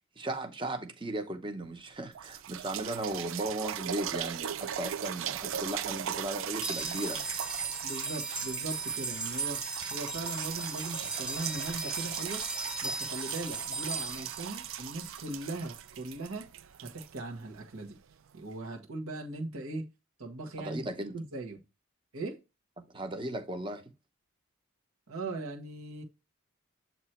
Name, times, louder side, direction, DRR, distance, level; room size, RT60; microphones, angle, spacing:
voice 1, 0.2-7.2 20.6-21.1 22.9-23.9, right 1 dB, 25° right, 0.8 m, -36 dB
sound 1, 1.6-1.7 2.1-17.9 18.5-18.6, right 10 dB, 70° right, 0.4 m, -38 dB
sound 2, 6.5-15.1, right 2 dB, 5° right, 0.5 m, -38 dB
voice 2, 7.8-9.6 9.9-12.4 12.8-16.5 16.8-18.0 18.3-19.9 20.2-20.8 21.1-21.6 22.1-22.4 25.1-26.0, right 2 dB, 90° right, 1.3 m, -39 dB
7.8 x 3.0 x 4.3 m
head